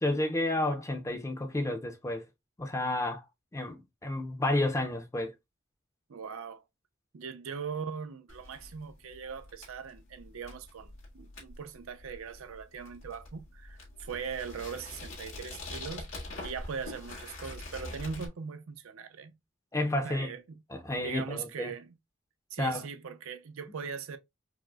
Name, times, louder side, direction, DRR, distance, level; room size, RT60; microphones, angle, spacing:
voice 1, 0.0-2.3 2.6-3.2 3.5-5.3 19.7-20.3 20.7-21.7 22.6-22.8, left 1 dB, 15° left, 0.4 m, -31 dB
voice 2, 6.1-6.6 7.1-16.0 16.4-19.3 20.0-20.6 21.0-21.9 22.5-24.2, right 6 dB, 80° right, 0.5 m, -40 dB
sound 1, 8.3-18.3, left 2 dB, 85° left, 1.6 m, -45 dB
4.8 x 2.0 x 2.2 m
head